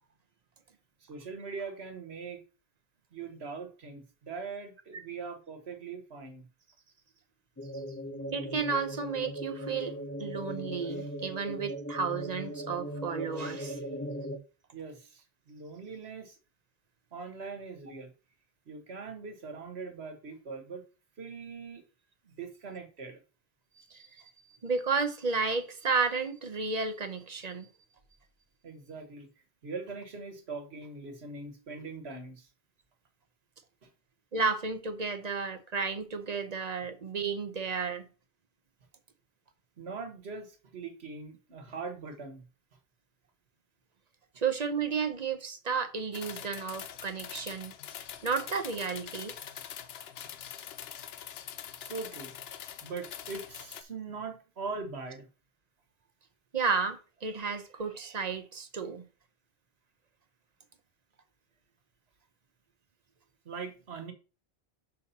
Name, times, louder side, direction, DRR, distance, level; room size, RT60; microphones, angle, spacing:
voice 1, 1.0-2.4 3.1-6.4 7.6-8.0 14.7-16.4 17.1-18.1 18.7-20.8 21.2-21.8 22.2-23.2 28.6-29.3 29.6-32.5 33.8-33.9 39.8-42.4 51.8-52.3 52.8-55.3 63.4-64.1, right 4 dB, 85° right, 1.5 m, -41 dB
sound 1, 7.6-14.4, equal, 15° left, 0.8 m, -38 dB
voice 2, 8.3-13.8 23.9-24.3 24.6-27.7 34.3-38.1 44.4-47.7 48.2-49.3 56.5-59.0, right 5 dB, 45° right, 0.8 m, -32 dB
sound 2, 46.1-53.8, left 9 dB, 75° left, 0.9 m, -44 dB
6.5 x 5.6 x 4.1 m
omnidirectional pair, 1.1 m